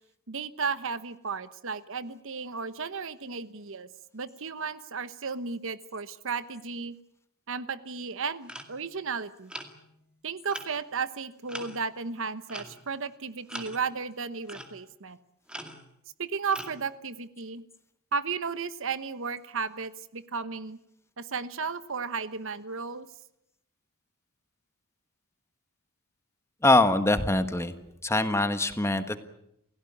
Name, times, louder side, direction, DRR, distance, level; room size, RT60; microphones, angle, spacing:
voice 1, 0.3-7.0 7.5-9.5 10.2-15.2 16.2-17.6 18.1-20.8 21.2-23.1, right 5 dB, 65° right, 13 dB, 1.1 m, -34 dB
sound 1, 8.5-8.8 9.5-10.0 10.5-10.7 11.5-12.0 12.5-13.0 13.5-14.0 14.5-14.8 15.5-15.9 16.5-16.9, equal, 5° right, 2.3 m, -42 dB
voice 2, 26.6-27.7 28.0-29.2, left 2 dB, 15° left, 9 dB, 1.4 m, -23 dB
29.5 x 16.5 x 8.7 m, 0.77 s
head